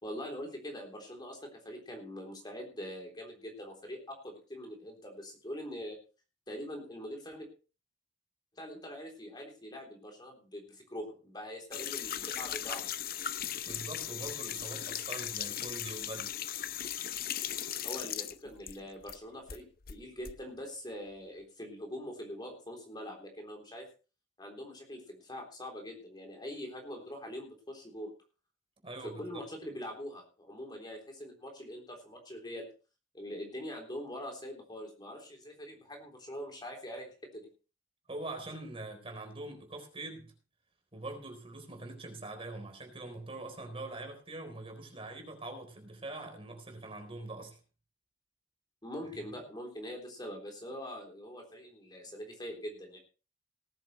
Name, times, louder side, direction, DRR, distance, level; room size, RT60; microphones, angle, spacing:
voice 1, 0.0-6.0 6.5-7.5 8.6-12.9 17.8-23.9 24.4-28.1 29.0-32.7 33.1-37.5 48.8-53.0, equal, 25° left, 3.5 m, -43 dB
sound 1, 11.7-19.2 19.5-20.3, left 10 dB, 50° left, 0.7 m, -38 dB
voice 2, 13.7-16.3 28.8-29.4 38.1-40.3 40.9-47.6 49.3-49.4, right 2 dB, 30° right, 4.0 m, -43 dB
19.0 x 11.0 x 3.3 m
head